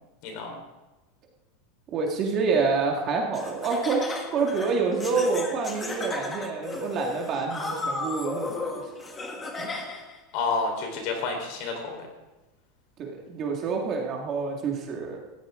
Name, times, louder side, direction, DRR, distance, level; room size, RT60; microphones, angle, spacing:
voice 1, 0.2-0.5 10.3-12.1, left 4 dB, 45° left, 2 dB, 4.0 m, -29 dB
voice 2, 1.9-4.0 4.3-8.7 9.6-9.7 13.0-15.2, right 4 dB, 25° right, 0 dB, 1.9 m, -27 dB
Laughter, 3.3-10.2, left 3 dB, 15° left, 1.4 m, -34 dB
18.5 x 14.5 x 3.7 m, 1.0 s
supercardioid pair, 175°, 0 cm